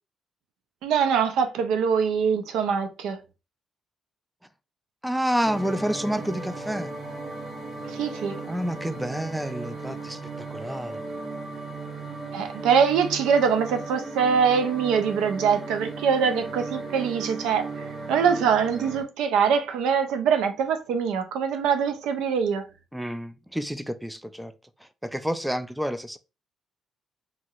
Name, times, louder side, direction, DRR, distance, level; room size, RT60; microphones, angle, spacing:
voice 1, 0.8-3.2 7.9-8.4 12.3-22.6, right 6 dB, 90° right, 0.5 m, -23 dB
voice 2, 5.0-6.9 8.4-10.2 10.5-11.0 22.9-24.5 25.0-26.2, equal, 5° right, 0.3 m, -29 dB
sound 1, 5.4-19.0, right 3 dB, 50° right, 1.0 m, -36 dB
3.0 x 2.7 x 2.4 m
cardioid pair, 90°, 0 cm